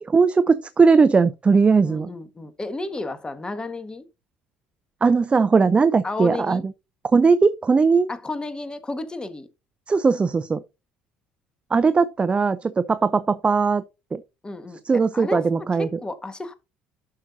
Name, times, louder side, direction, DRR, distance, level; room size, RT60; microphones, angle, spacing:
voice 1, 0.0-2.1 5.0-6.6 7.1-8.1 9.9-10.6 11.7-13.8 14.1-14.2 14.8-15.9, right 4 dB, 25° right, 0.6 m, -19 dB
voice 2, 1.8-4.1 6.0-6.6 8.1-9.5 14.4-14.8 15.1-16.5, left 2 dB, 20° left, 1.5 m, -32 dB
11.5 x 5.7 x 2.7 m
figure-of-eight pair, 60°, 5 cm